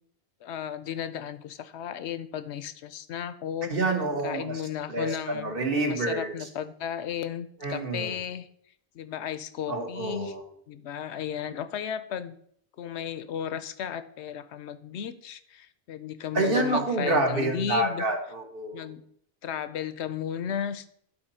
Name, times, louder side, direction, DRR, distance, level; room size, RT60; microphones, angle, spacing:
voice 1, 0.4-3.7 4.2-5.5 5.8-8.5 8.9-10.3 10.7-12.3 12.8-18.0 18.7-19.0 19.4-20.9, left 9 dB, 80° left, 13 dB, 0.9 m, -34 dB
voice 2, 3.7-4.6 4.9-6.3 7.6-8.2 9.7-10.5 16.3-18.9, right 2 dB, 55° right, 3 dB, 1.7 m, -28 dB
11.5 x 4.2 x 5.6 m, 0.66 s
omnidirectional pair, 1.1 m